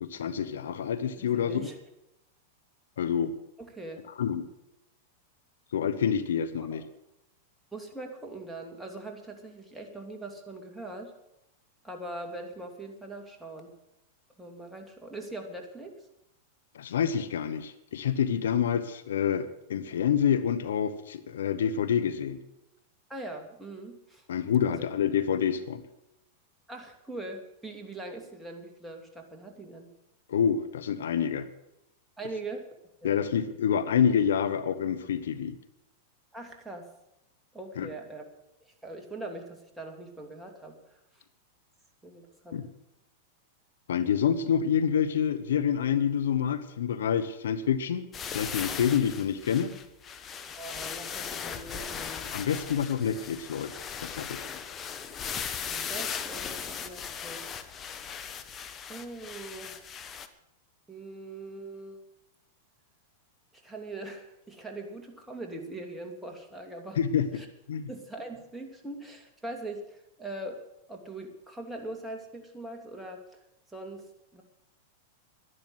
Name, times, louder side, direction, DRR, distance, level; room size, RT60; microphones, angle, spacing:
voice 1, 0.0-1.7 3.0-3.4 4.2-4.5 5.7-6.8 16.7-22.4 24.3-25.8 30.3-31.5 33.0-35.6 37.8-37.9 42.5-42.7 43.9-48.1 48.3-49.7 52.3-53.7 54.0-54.5 67.0-67.4 67.7-67.9, left 8 dB, 75° left, 12 dB, 1.0 m, -27 dB
voice 2, 1.2-1.8 3.6-4.1 6.7-6.9 7.7-11.1 11.8-13.7 14.4-16.0 23.1-24.3 24.7-24.8 26.7-29.9 32.2-32.6 33.0-33.2 36.3-36.9 37.5-38.2 38.6-40.8 41.1-41.2 42.0-42.7 50.6-52.3 55.7-57.5 58.9-59.9 60.9-62.0 63.5-67.0 67.3-67.5 67.9-70.6 70.9-73.2 73.7-74.4, right 2 dB, 5° right, 1 dB, 2.7 m, -41 dB
sound 1, 48.1-60.3, left 7 dB, 25° left, 1.2 m, -38 dB
12.0 x 11.0 x 7.9 m, 0.86 s
hypercardioid pair, 110°, 0 cm